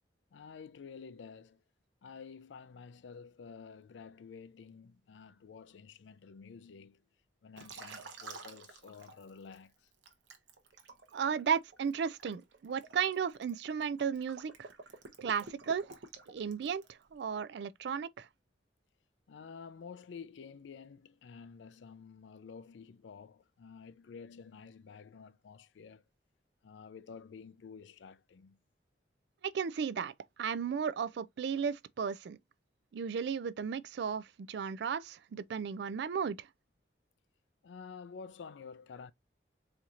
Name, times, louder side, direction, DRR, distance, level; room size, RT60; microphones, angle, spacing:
voice 1, 0.3-1.6 2.0-7.0 7.4-9.9 19.3-26.0 26.6-28.6 37.6-39.1, left 5 dB, 80° left, 0.4 m, -50 dB
Liquid, 7.6-9.6 10.0-17.0, right 4 dB, 90° right, 0.8 m, -50 dB
voice 2, 11.1-14.7 15.2-16.0 16.3-18.3 29.4-32.4 32.9-36.5, right 6 dB, 70° right, 0.3 m, -35 dB
4.3 x 2.8 x 2.4 m
head